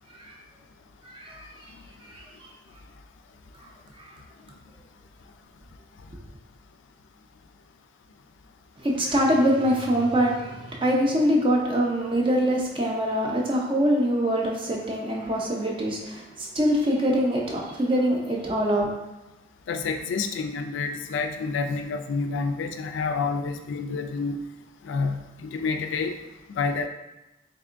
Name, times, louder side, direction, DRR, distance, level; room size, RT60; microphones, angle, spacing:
voice 1, 1.0-1.5 2.1-2.2 3.6-3.7 4.0-4.1 8.8-18.9, equal, 25° right, -1 dB, 0.5 m, -24 dB
voice 2, 19.7-24.4 24.9-26.2 26.5-26.9, left 4 dB, 80° left, 6 dB, 0.3 m, -28 dB
3.6 x 3.4 x 2.5 m, 0.99 s
head